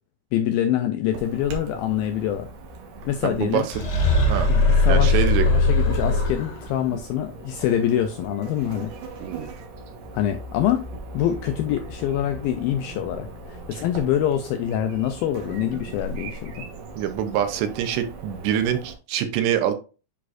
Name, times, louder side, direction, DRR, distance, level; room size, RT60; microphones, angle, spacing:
voice 1, 0.3-2.5 3.1-3.7 4.8-8.9 10.1-10.9 11.1-16.7, left 10 dB, 85° left, 2.1 m, -25 dB
Chirp tweet / Buzz, 1.1-18.9, right 2 dB, 75° right, 3.3 m, -39 dB
voice 2, 3.2-3.7 4.3-4.5 4.9-5.5 9.2-9.5 13.7-13.8 17.0-19.7, right 10 dB, 90° right, 3.1 m, -25 dB
sound 1, 3.7-6.7, left 2 dB, 40° left, 2.2 m, -19 dB
10.0 x 4.1 x 2.6 m
omnidirectional pair, 4.8 m